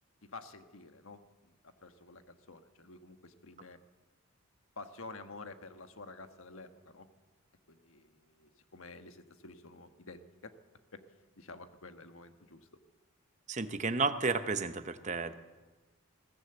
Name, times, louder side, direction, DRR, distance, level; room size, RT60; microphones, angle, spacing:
voice 1, 0.2-3.8 4.8-7.1 7.7-10.5 10.9-11.0 11.4-12.8, left 3 dB, 75° left, 9 dB, 1.4 m, -50 dB
voice 2, 13.5-15.3, right 4 dB, 35° right, 11 dB, 0.9 m, -32 dB
21.5 x 16.0 x 8.0 m, 1.2 s
head